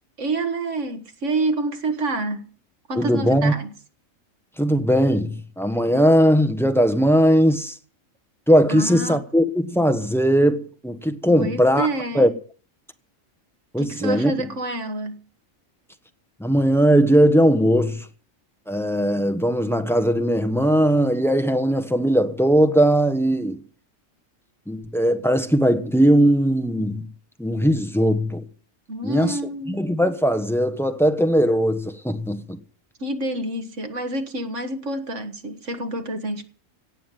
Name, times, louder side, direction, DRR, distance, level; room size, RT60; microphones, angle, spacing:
voice 1, 0.2-2.5 2.9-3.7 8.7-9.2 11.3-12.3 13.8-15.3 28.9-30.0 33.0-36.4, right 2 dB, 65° right, 1.9 m, -28 dB
voice 2, 3.0-3.5 4.6-7.8 8.5-11.9 12.1-12.3 13.7-14.3 16.4-18.1 18.7-23.6 24.7-27.1 27.4-28.4 29.0-29.4 29.7-32.6, equal, ahead, 1.1 m, -19 dB
17.5 x 7.3 x 9.2 m
omnidirectional pair, 1.4 m